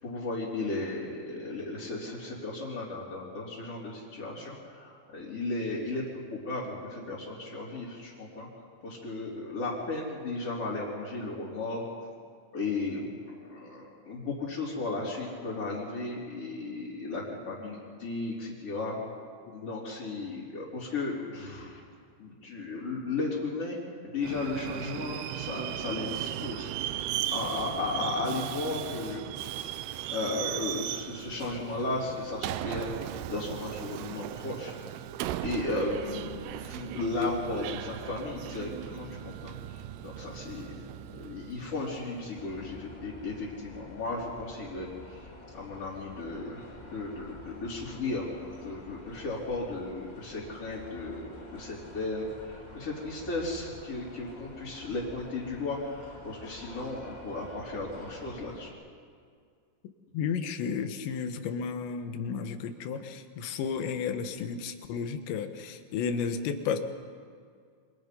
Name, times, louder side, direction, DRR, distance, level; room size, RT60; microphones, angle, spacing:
voice 1, 0.0-8.5 8.8-11.8 12.5-19.0 19.5-21.8 22.2-23.8 24.0-29.2 30.1-34.7 35.2-45.3 45.5-58.7, left 3 dB, 35° left, -8 dB, 4.1 m, -35 dB
Subway metro underground, 24.2-42.7, right 13 dB, 80° right, 2.5 m, -37 dB
sound 1, 42.4-58.7, left 1 dB, 55° left, 0.4 m, -49 dB
voice 2, 60.1-66.8, left 6 dB, 75° left, 7 dB, 3.4 m, -33 dB
29.0 x 25.5 x 5.4 m, 2.1 s
omnidirectional pair, 5.4 m